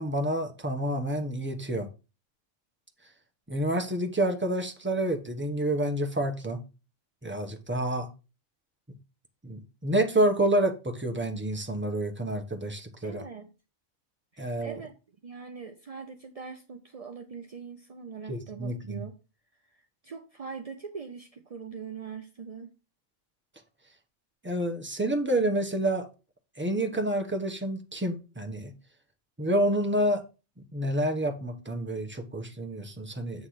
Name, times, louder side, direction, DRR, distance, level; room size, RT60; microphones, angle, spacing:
voice 1, 0.0-1.9 3.5-6.6 7.2-8.1 9.4-13.2 14.4-14.8 18.3-19.0 24.4-26.1 26.6-28.7 29.4-30.2 30.7-33.5, right 1 dB, 10° right, 0.9 m, -28 dB
voice 2, 13.0-13.5 14.3-15.0 15.2-19.1 19.6-22.7, right 6 dB, 45° right, 0.4 m, -42 dB
8.2 x 3.3 x 5.7 m
omnidirectional pair, 1.5 m